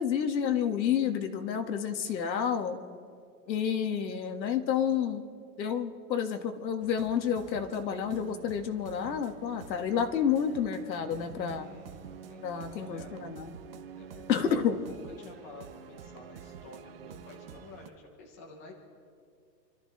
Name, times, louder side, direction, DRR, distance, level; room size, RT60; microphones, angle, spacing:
voice 1, 0.0-2.8 3.5-5.2 5.6-11.7 12.4-13.6 14.3-14.8, left 8 dB, 90° left, 6 dB, 1.8 m, -30 dB
sound 1, 6.8-17.9, right 7 dB, 35° right, 0.8 m, -48 dB
voice 2, 10.9-13.2 13.9-14.5 14.8-18.7, left 3 dB, 10° left, -1 dB, 0.6 m, -51 dB
28.5 x 13.0 x 3.3 m, 2.3 s
supercardioid pair, 175°, 50 cm